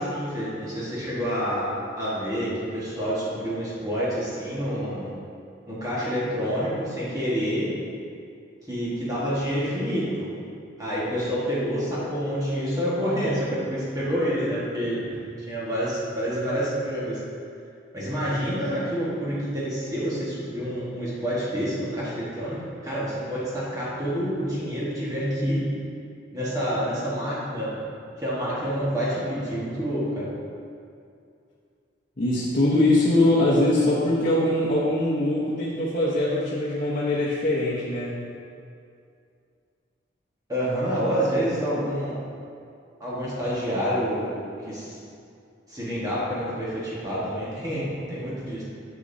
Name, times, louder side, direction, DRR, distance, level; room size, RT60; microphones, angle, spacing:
voice 1, 0.0-1.7 2.0-5.1 5.7-7.7 8.7-10.3 10.8-15.0 15.5-17.2 17.9-22.6 22.8-25.6 26.3-27.8 28.2-30.3 40.5-42.1 43.0-44.3 44.7-45.0 45.7-48.6, equal, 20° right, -9 dB, 1.5 m, -28 dB
voice 2, 32.2-38.2, left 1 dB, 45° left, -9 dB, 1.0 m, -22 dB
8.0 x 7.0 x 2.7 m, 2.4 s
head